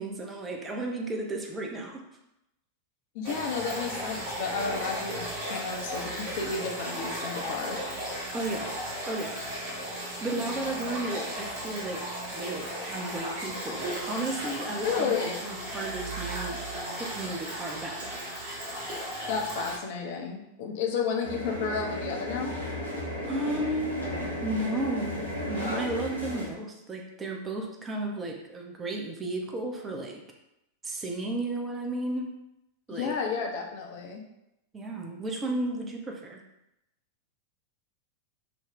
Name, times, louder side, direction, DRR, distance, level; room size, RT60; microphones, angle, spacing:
voice 1, 0.0-2.0 8.3-8.7 9.1-9.4 10.2-12.0 12.3-15.1 15.4-16.6 16.9-18.2 23.3-24.0 24.4-30.2 30.8-32.4 32.9-33.1 34.7-36.4, right 2 dB, 20° right, 1 dB, 0.4 m, -33 dB
voice 2, 3.1-7.8 14.8-15.3 19.3-22.5 32.9-34.2, left 5 dB, 50° left, 1 dB, 0.4 m, -32 dB
sound 1, 3.2-19.8, right 1 dB, 50° right, 0.9 m, -35 dB
sound 2, 21.2-26.5, left 1 dB, 85° right, 0.6 m, -34 dB
2.5 x 2.0 x 3.1 m, 0.86 s
figure-of-eight pair, 90°, 0 cm